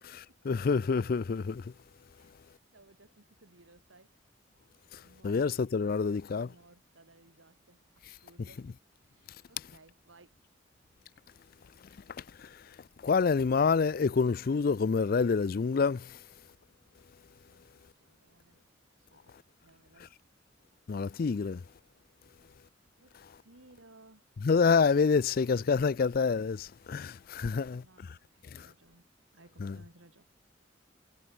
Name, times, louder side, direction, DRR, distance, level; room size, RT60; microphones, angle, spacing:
voice 1, 0.5-1.7 5.2-6.5 12.4-12.6 13.0-16.2 20.9-21.6 24.4-27.8 28.5-28.7 29.6-29.8, left 5 dB, 50° left, 0.4 m, -27 dB
voice 2, 2.1-4.1 5.0-8.7 9.1-10.4 17.2-18.6 19.0-19.3 19.6-20.1 22.3-22.4 23.0-24.3 27.2-30.2, right 2 dB, 90° right, 3.6 m, -61 dB
head